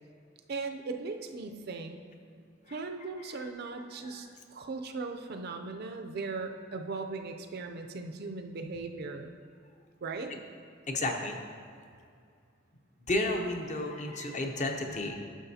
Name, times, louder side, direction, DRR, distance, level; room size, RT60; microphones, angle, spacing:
voice 1, 0.5-2.0 2.7-9.3 10.0-10.3, right 3 dB, 50° right, 5 dB, 0.4 m, -38 dB
voice 2, 10.9-11.4 13.1-15.2, left 2 dB, 35° left, 3 dB, 0.7 m, -32 dB
11.0 x 6.1 x 2.7 m, 2.3 s
head